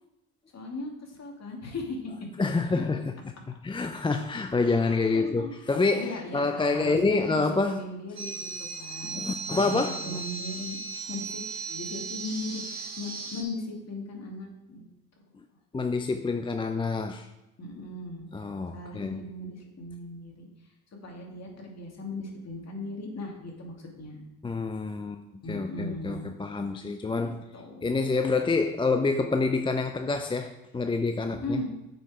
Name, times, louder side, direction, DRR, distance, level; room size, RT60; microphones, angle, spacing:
voice 1, 0.5-2.1 2.7-2.8 5.1-5.5 5.9-9.2 9.7-10.8 11.1-14.9 17.6-18.3 18.7-20.5 21.0-24.2 25.4-26.3 26.8-26.9 27.2-28.0 31.3-31.6, left 2 dB, 35° left, 0 dB, 2.6 m, -38 dB
voice 2, 2.4-3.2 3.6-7.8 9.0-10.2 15.7-17.3 18.3-19.2 24.4-27.4 27.8-31.6, left 3 dB, 10° left, 6 dB, 0.5 m, -27 dB
sound 1, 8.2-13.4, right 4 dB, 40° right, 2.7 m, -37 dB
8.5 x 5.4 x 5.0 m, 0.96 s
hypercardioid pair, 60°, 43 cm